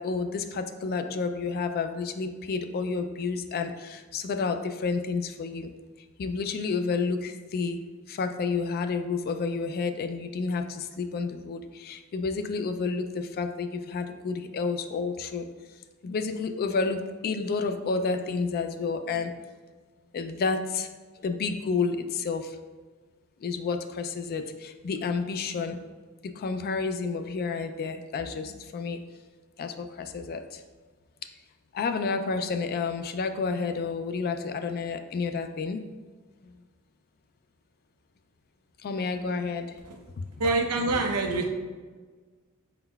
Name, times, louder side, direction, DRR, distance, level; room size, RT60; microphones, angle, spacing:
voice 1, 0.0-5.7 6.2-7.8 8.1-15.5 16.0-19.3 20.1-22.6 23.4-25.8 26.2-29.0 29.6-30.6 31.7-35.8 36.4-36.5 38.8-39.8 40.2-40.3, left 4 dB, 45° left, 7 dB, 0.3 m, -30 dB
voice 2, 40.4-41.5, right 3 dB, 80° right, 3 dB, 0.6 m, -26 dB
5.2 x 3.9 x 2.3 m, 1.4 s
head